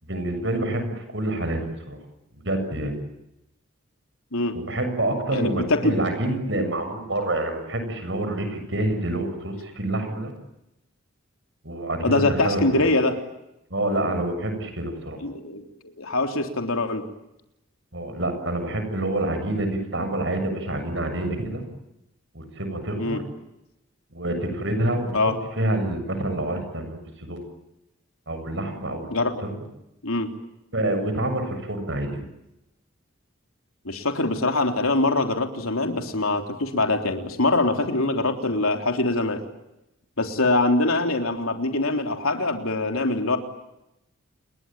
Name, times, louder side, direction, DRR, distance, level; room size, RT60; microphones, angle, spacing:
voice 1, 0.0-1.6 1.9-2.0 2.4-2.9 4.5-10.3 11.6-12.6 13.7-15.2 17.9-21.6 22.3-23.2 24.1-25.2 25.6-27.4 28.3-29.1 29.4-29.6 30.7-32.2, right 1 dB, 60° right, 7 dB, 7.4 m, -27 dB
voice 2, 5.3-5.9 12.0-13.2 15.2-15.6 16.0-17.0 23.0-23.2 25.1-25.4 29.1-29.4 30.0-30.3 33.9-39.4 40.2-43.4, left 2 dB, 85° left, 5 dB, 3.6 m, -23 dB
29.5 x 22.0 x 9.0 m, 0.89 s
head